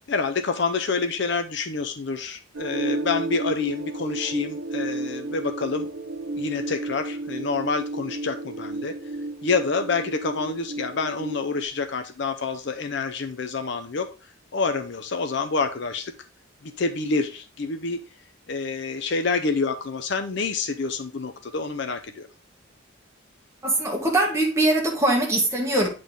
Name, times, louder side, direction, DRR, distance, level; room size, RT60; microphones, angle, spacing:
voice 1, 0.1-5.9 6.4-9.0 9.4-14.1 14.5-16.1 16.6-18.0 18.5-22.3, left 4 dB, 55° left, 0.5 m, -27 dB
sound 1, 2.5-11.6, right 2 dB, 75° right, 0.8 m, -32 dB
voice 2, 23.6-25.9, right 1 dB, 15° right, 1.6 m, -22 dB
8.6 x 3.8 x 3.7 m
head